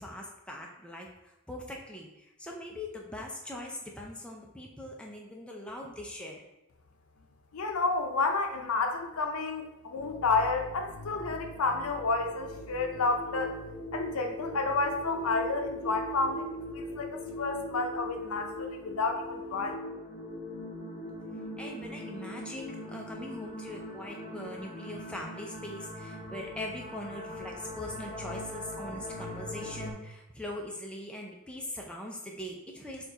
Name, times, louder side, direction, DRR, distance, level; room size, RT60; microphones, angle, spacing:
voice 1, 0.0-6.4 21.6-33.1, left 1 dB, 5° left, -1 dB, 0.4 m, -41 dB
voice 2, 7.5-13.6 13.9-19.7, left 3 dB, 85° left, 4 dB, 0.5 m, -30 dB
sound 1, 9.9-29.9, left 1 dB, 35° left, 0.8 m, -41 dB
4.4 x 2.4 x 3.8 m, 0.94 s
head